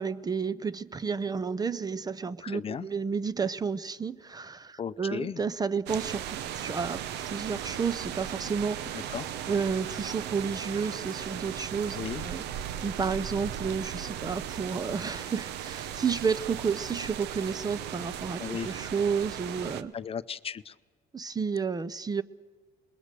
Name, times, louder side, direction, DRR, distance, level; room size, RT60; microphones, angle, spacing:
voice 1, 0.0-8.8 9.5-12.4 12.8-19.9 21.1-22.2, right 5 dB, 25° right, 18 dB, 0.6 m, -31 dB
voice 2, 2.4-2.9 4.8-5.4 8.9-9.3 11.9-12.2 18.4-18.7 19.9-20.8, left 7 dB, 35° left, 14 dB, 0.6 m, -36 dB
sound 1, 5.9-19.8, right 10 dB, 85° right, 1.0 m, -37 dB
26.5 x 21.0 x 6.8 m, 1.4 s
cardioid pair, 110°, 17 cm